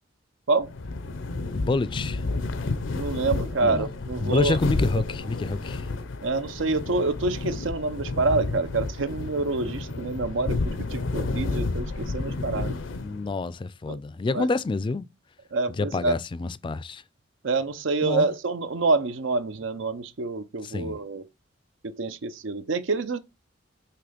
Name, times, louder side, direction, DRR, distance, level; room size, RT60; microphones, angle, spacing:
sound 1, 0.6-13.3, left 3 dB, 90° left, 0.7 m, -31 dB
voice 1, 1.5-2.2 3.6-3.9 4.2-5.9 13.0-15.1 15.7-17.0 18.0-18.3 20.6-21.0, left 3 dB, 25° left, 0.3 m, -28 dB
voice 2, 2.9-4.6 6.2-12.8 13.9-14.0 14.3-14.5 15.5-16.1 17.4-21.3 21.8-23.2, right 3 dB, 90° right, 0.6 m, -27 dB
5.8 x 3.2 x 5.1 m
head